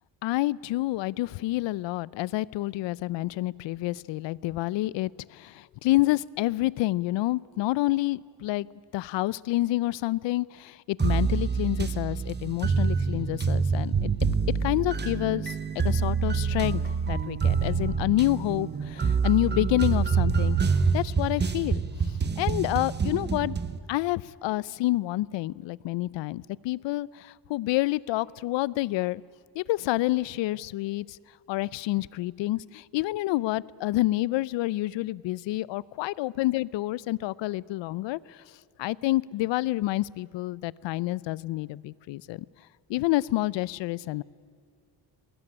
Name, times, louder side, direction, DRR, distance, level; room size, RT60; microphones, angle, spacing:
voice 1, 0.2-8.7 8.9-14.1 14.6-20.6 20.9-21.8 22.4-23.5 23.9-29.2 29.5-31.2 31.5-38.4 38.8-42.5 42.9-44.2, left 17 dB, 80° left, 23 dB, 0.6 m, -28 dB
sound 1, 11.0-23.8, right 5 dB, 25° right, 0.9 m, -26 dB
20.5 x 18.0 x 9.8 m, 2.1 s
cardioid pair, 125°, 43 cm